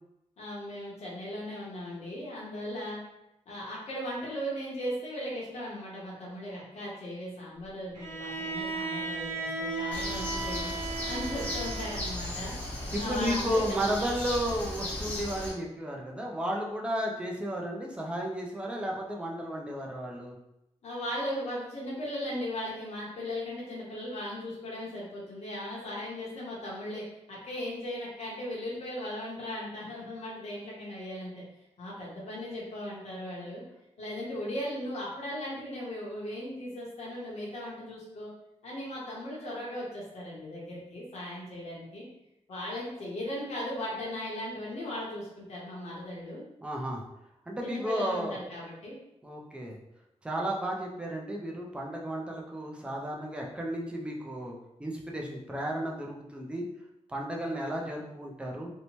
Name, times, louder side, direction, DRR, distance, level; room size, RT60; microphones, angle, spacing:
voice 1, 0.4-3.0 3.5-10.7 11.1-12.5 13.0-13.8 20.8-31.3 31.8-33.6 34.0-38.3 38.6-42.1 42.5-46.4 47.6-49.0, left 1 dB, 70° left, -5 dB, 0.8 m, -37 dB
Bowed string instrument, 7.9-12.2, right 3 dB, 90° right, 0.7 m, -36 dB
Bird, 9.9-15.5, left 1 dB, 10° left, 0.8 m, -36 dB
voice 2, 12.9-20.3 46.6-47.0 47.5-48.4 49.2-49.8 50.2-54.5 54.8-56.6 57.1-58.7, equal, 10° right, -1 dB, 0.4 m, -33 dB
2.7 x 2.1 x 3.0 m, 0.87 s
wide cardioid pair, 175°, 12 cm